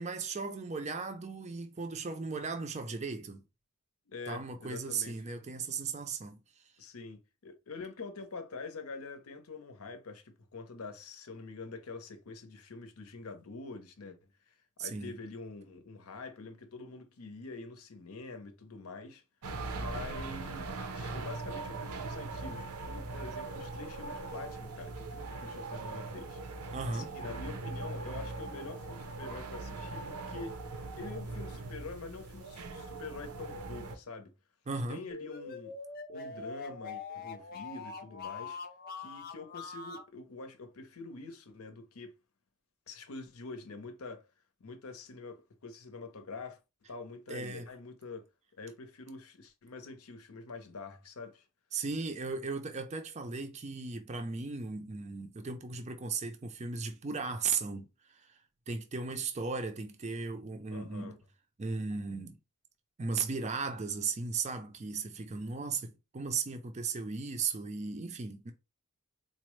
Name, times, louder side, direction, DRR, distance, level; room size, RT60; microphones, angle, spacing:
voice 1, 0.0-3.4 4.3-6.4 14.8-15.2 26.7-27.1 34.7-35.0 47.3-47.7 51.7-57.9 58.1-58.4 58.7-61.2 61.6-62.4 63.0-68.5, right 4 dB, 30° right, 0.4 m, -36 dB
voice 2, 4.1-5.2 6.8-14.2 14.5-14.6 14.8-19.2 19.7-26.4 26.8-34.3 34.9-35.8 36.1-38.6 39.0-42.1 42.9-44.3 44.6-46.6 46.9-48.3 48.6-51.5 60.7-61.2, left 3 dB, 75° left, 0.7 m, -45 dB
sound 1, 19.4-34.0, right 3 dB, 80° right, 0.6 m, -40 dB
sound 2, 35.1-40.1, left 4 dB, 40° left, 0.5 m, -43 dB
4.1 x 2.0 x 3.1 m
head